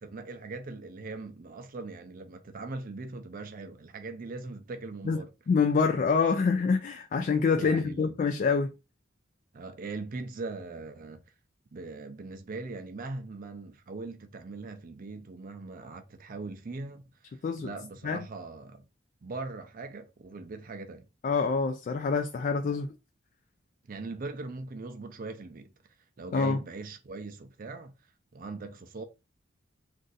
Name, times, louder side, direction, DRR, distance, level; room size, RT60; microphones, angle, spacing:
voice 1, 0.0-5.3 7.6-8.1 9.5-11.2 11.7-18.8 19.2-21.1 23.9-25.7 26.2-27.9 28.3-29.0, right 3 dB, 45° right, 0.5 m, -40 dB
voice 2, 5.5-8.7 17.4-17.7 18.0-18.2 21.2-22.9 26.3-26.6, left 5 dB, 45° left, 0.3 m, -26 dB
2.6 x 2.4 x 3.9 m
head